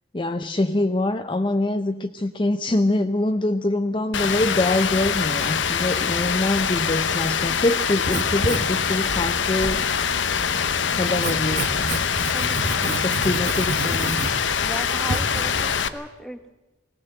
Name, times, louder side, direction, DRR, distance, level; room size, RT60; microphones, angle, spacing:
voice 1, 0.1-9.9 10.9-12.0 12.8-14.2, left 2 dB, 25° left, 7 dB, 0.6 m, -24 dB
Rain, 4.1-15.9, left 7 dB, 85° left, 0.9 m, -24 dB
Writing, 7.9-15.6, right 2 dB, 60° right, 1.3 m, -31 dB
voice 2, 12.3-13.3 14.6-16.5, right 1 dB, 5° left, 8 dB, 1.3 m, -37 dB
21.0 x 17.5 x 7.7 m, 1.1 s
head